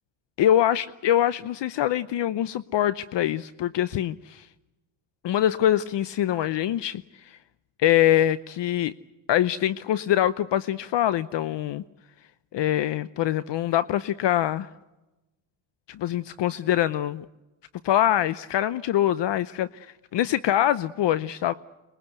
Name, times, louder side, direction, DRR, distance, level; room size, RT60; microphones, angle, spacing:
voice 1, 0.4-4.5 5.2-7.4 7.8-8.9 9.3-11.8 12.5-14.7 15.9-17.3 17.8-21.5, left 12 dB, 60° left, 15 dB, 0.8 m, -24 dB
25.0 x 21.5 x 8.1 m, 1.0 s
cardioid pair, 85°, 49 cm